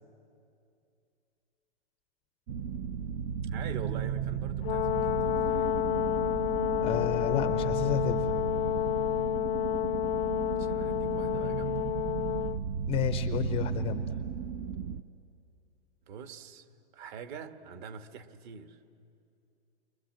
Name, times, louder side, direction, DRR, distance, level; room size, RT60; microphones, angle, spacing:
sound 1, 2.5-15.0, right 7 dB, 30° right, 0.5 m, -34 dB
voice 1, 3.5-5.7 10.6-11.9 16.1-16.6 16.9-18.8, right 7 dB, 45° right, 1.6 m, -44 dB
Brass instrument, 4.6-12.6, left 13 dB, 60° left, 0.7 m, -30 dB
voice 2, 6.8-8.4 12.9-14.1, left 11 dB, 15° left, 0.6 m, -31 dB
29.5 x 24.5 x 7.7 m
hypercardioid pair, 140°, 33 cm